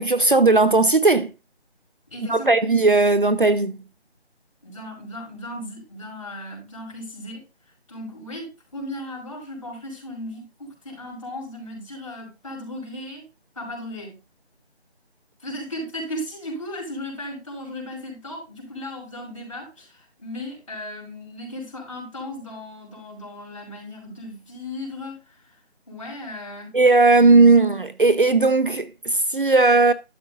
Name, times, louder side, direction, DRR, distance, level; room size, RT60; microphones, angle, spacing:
voice 1, 0.0-1.3 2.3-3.8 26.7-29.9, right 3 dB, 50° right, 0.8 m, -17 dB
voice 2, 2.1-2.6 4.6-7.4 7.9-13.3 13.6-14.2 15.4-25.6 25.9-26.8, left 1 dB, 30° left, 5.6 m, -36 dB
12.5 x 6.2 x 3.9 m
figure-of-eight pair, 180°, 33 cm